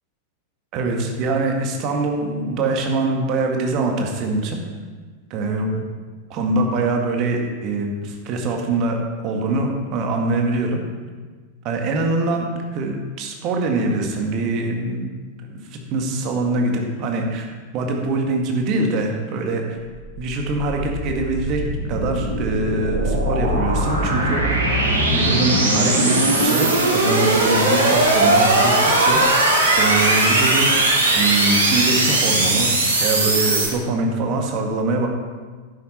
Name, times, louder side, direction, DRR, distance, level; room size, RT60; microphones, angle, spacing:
voice 1, 0.7-4.6 5.3-5.8 6.3-9.0 9.2-10.8 11.6-12.5 12.7-15.0 15.5-17.5 17.7-19.8 20.2-21.6 21.9-24.6 25.1-29.2 29.8-30.7 31.1-35.1, right 2 dB, 40° right, 2 dB, 1.8 m, -23 dB
sound 1, 20.0-33.7, right 2 dB, 70° right, 2.4 m, -19 dB
11.0 x 9.8 x 4.4 m, 1.5 s
figure-of-eight pair, 90°, 0 cm